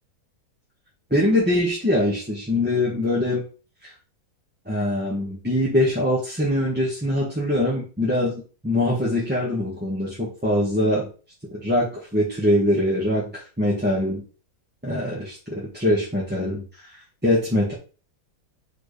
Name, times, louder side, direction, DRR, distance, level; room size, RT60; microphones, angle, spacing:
voice 1, 1.1-3.4 4.6-11.1 11.5-14.2 14.8-16.6 17.2-17.7, left 1 dB, 5° right, -7 dB, 1.7 m, -23 dB
4.8 x 4.4 x 5.0 m, 0.35 s
omnidirectional pair, 1.7 m